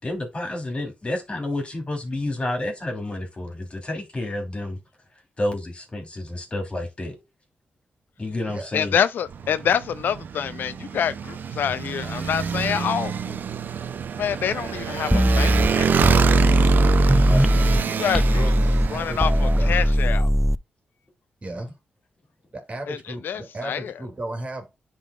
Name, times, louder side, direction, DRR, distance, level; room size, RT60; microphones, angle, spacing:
voice 1, 0.0-4.8 5.4-7.2 8.2-9.0 16.9-17.5, left 1 dB, 35° left, 2.8 m, -30 dB
voice 2, 8.2-8.7 18.3-19.9 21.4-21.7 22.5-24.7, right 2 dB, 40° right, 2.3 m, -35 dB
voice 3, 8.7-13.4 14.2-16.0 17.9-18.5 18.9-20.3 22.9-23.0 23.2-23.9, left 8 dB, 80° left, 0.4 m, -26 dB
Motorcycle, 9.3-20.0, right 7 dB, 70° right, 0.6 m, -27 dB
sound 1, 15.1-17.8 18.1-20.6, equal, 5° right, 0.3 m, -19 dB
10.5 x 3.8 x 2.3 m
cardioid pair, 70°, 3 cm